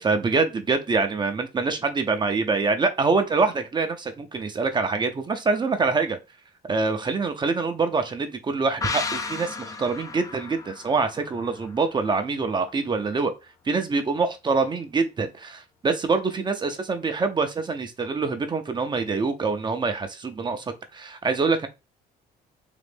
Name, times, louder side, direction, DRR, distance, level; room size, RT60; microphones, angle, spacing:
voice 1, 0.0-6.2 6.6-13.3 13.7-20.6 20.9-21.7, right 4 dB, 25° right, 0.7 m, -25 dB
sound 1, 8.8-12.3 12.6-12.7, left 4 dB, 20° left, 0.5 m, -34 dB
3.8 x 2.6 x 3.5 m
cardioid pair, 110°, 17 cm